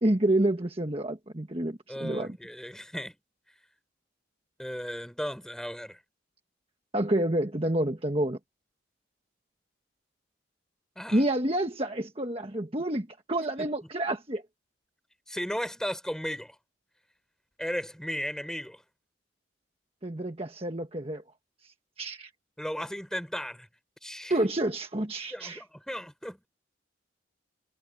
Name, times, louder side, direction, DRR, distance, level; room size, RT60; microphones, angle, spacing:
voice 1, 0.0-2.4 6.9-8.4 11.1-14.4 20.0-21.2 21.6-22.3 24.3-25.6, right 1 dB, 30° right, 1.5 m, -28 dB
voice 2, 1.9-3.2 4.6-6.0 11.0-11.2 13.6-13.7 15.3-16.6 17.6-18.8 22.6-23.7 24.0-24.3 25.3-26.5, equal, 5° left, 6.1 m, -35 dB
head